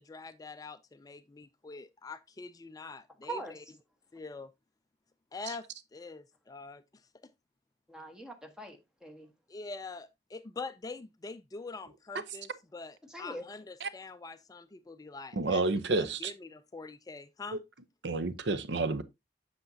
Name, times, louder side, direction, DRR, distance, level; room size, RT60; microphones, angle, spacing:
voice 1, 0.0-3.6 4.1-4.5 5.3-5.6 5.9-6.8 9.5-15.6 15.9-17.6, left 3 dB, 20° left, 0.4 m, -44 dB
voice 2, 3.2-3.5 7.9-9.3 13.1-13.4, right 2 dB, 5° right, 1.3 m, -42 dB
voice 3, 15.3-16.3 18.0-19.0, right 3 dB, 80° right, 0.7 m, -30 dB
8.0 x 6.7 x 2.7 m
head